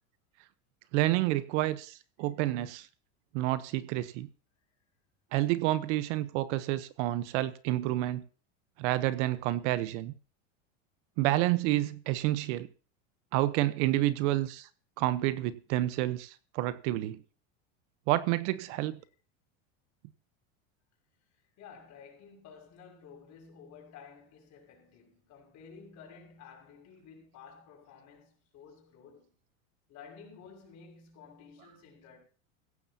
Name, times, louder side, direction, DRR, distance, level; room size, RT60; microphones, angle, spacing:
voice 1, 0.9-2.9 3.3-4.3 5.3-8.2 8.8-10.1 11.2-12.7 13.3-14.7 15.0-17.2 18.1-19.0, right 16 dB, 60° right, 1.0 m, -29 dB
voice 2, 21.6-29.3 29.9-32.2, left 6 dB, 45° left, 6.2 m, -52 dB
16.0 x 14.5 x 2.9 m
supercardioid pair, 130°, 40 cm